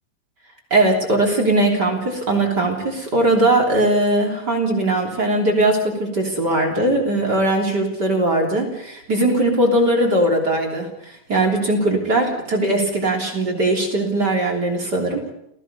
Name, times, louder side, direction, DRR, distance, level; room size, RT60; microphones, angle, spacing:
voice 1, 0.7-15.2, right 1 dB, 30° right, 3 dB, 3.5 m, -20 dB
30.0 x 16.5 x 5.3 m, 0.76 s
omnidirectional pair, 4.2 m